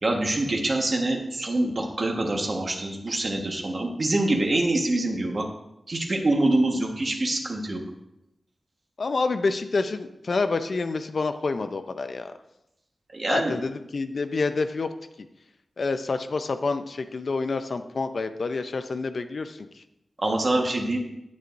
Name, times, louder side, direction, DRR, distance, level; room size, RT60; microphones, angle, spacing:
voice 1, 0.0-5.4 5.9-7.8 13.1-13.6 20.2-21.0, right 2 dB, 45° right, 1 dB, 1.3 m, -25 dB
voice 2, 9.0-12.3 13.3-14.9 15.2-15.3 15.8-19.6, left 3 dB, 60° left, 9 dB, 0.5 m, -28 dB
9.5 x 8.2 x 2.6 m, 0.86 s
wide cardioid pair, 120°, 0 cm